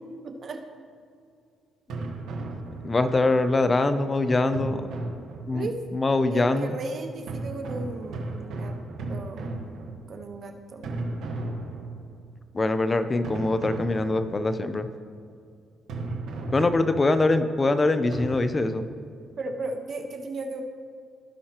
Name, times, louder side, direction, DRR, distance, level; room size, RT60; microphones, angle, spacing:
voice 1, 0.2-0.6 5.5-5.8 6.2-8.7 9.1-9.5 10.1-10.8 19.4-20.6, right 3 dB, 50° right, 6 dB, 1.0 m, -35 dB
sound 1, 1.9-3.3 4.5-5.8 7.3-10.4 10.8-12.3 13.2-14.6 15.9-17.3 18.1-18.3, right 2 dB, 80° right, 1.2 m, -35 dB
voice 2, 2.8-4.9 5.5-6.7 12.5-14.9 16.5-18.8, left 2 dB, 25° left, 10 dB, 0.5 m, -23 dB
16.5 x 5.6 x 2.9 m, 2.3 s
cardioid pair, 90°, 0 cm